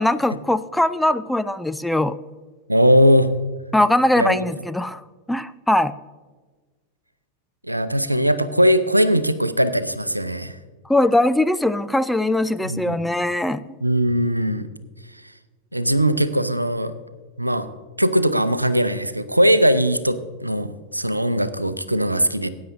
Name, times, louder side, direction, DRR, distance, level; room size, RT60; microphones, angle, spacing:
voice 1, 0.0-2.2 3.7-5.0 5.3-6.0 10.9-13.6, left 1 dB, 5° left, 11 dB, 0.4 m, -20 dB
voice 2, 2.7-3.3 4.2-4.4 7.7-10.6 12.6-13.0 13.8-14.7 15.7-16.9 17.4-17.7 18.0-22.5, equal, 85° right, 13 dB, 0.6 m, -19 dB
18.5 x 9.5 x 2.6 m, 1.4 s
figure-of-eight pair, 90°, 0 cm